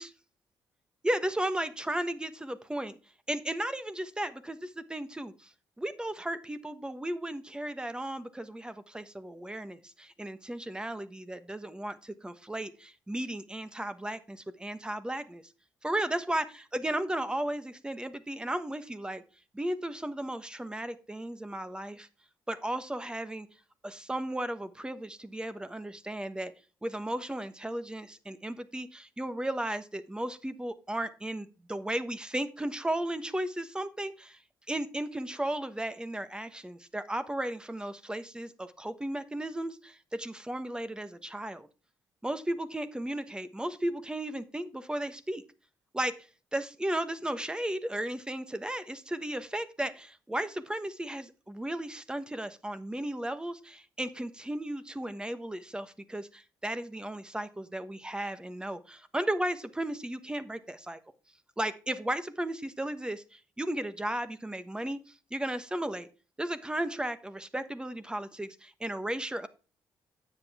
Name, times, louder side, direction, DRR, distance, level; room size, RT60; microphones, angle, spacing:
voice 1, 1.0-3.0 3.3-5.5 5.8-15.4 15.8-19.2 19.5-22.1 22.5-23.5 23.8-26.5 26.8-34.4 34.7-41.7 42.2-45.4 45.9-46.2 46.5-61.0 61.6-66.1 66.4-69.5, right 1 dB, 10° right, 12 dB, 1.2 m, -35 dB
9.7 x 8.0 x 3.6 m, 0.34 s
supercardioid pair, 70°, 8 cm